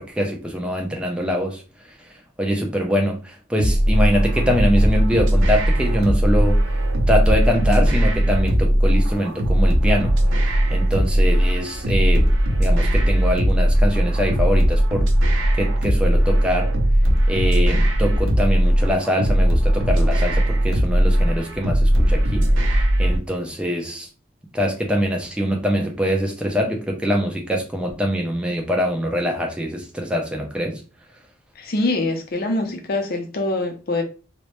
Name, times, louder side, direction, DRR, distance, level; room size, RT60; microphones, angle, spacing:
voice 1, 0.0-1.6 2.4-6.6 7.1-10.1 10.7-12.3 12.6-15.1 15.6-16.7 17.3-22.5 23.0-24.1 24.5-30.8, equal, 5° right, 0.4 m, -23 dB
sound 1, 3.6-23.2, equal, 85° right, 0.5 m, -18 dB
voice 2, 31.6-34.0, left 2 dB, 50° left, 0.5 m, -24 dB
2.1 x 2.0 x 2.9 m
head